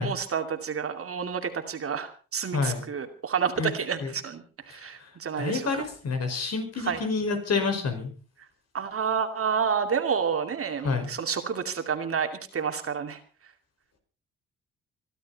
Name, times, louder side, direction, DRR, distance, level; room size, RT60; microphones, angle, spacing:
voice 1, 0.0-5.8 6.8-7.0 8.7-13.2, right 6 dB, 50° right, 6 dB, 2.6 m, -29 dB
voice 2, 2.5-2.8 3.6-3.7 4.0-4.1 5.4-8.1 10.8-11.1, left 4 dB, 55° left, 6 dB, 5.4 m, -28 dB
24.0 x 12.5 x 4.2 m, 0.37 s
cardioid pair, 90°, 30 cm